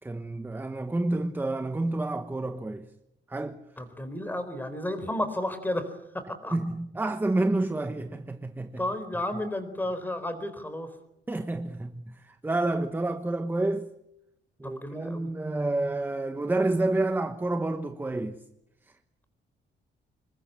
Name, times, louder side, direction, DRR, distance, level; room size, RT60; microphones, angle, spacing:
voice 1, 0.0-2.9 3.3-3.6 6.5-8.8 11.3-13.9 14.6-18.4, right 2 dB, 10° right, 1.1 m, -29 dB
voice 2, 3.8-6.6 8.8-10.9 14.6-15.3, left 1 dB, 10° left, 4.1 m, -32 dB
26.5 x 22.0 x 8.6 m
cardioid pair, 150°, 19 cm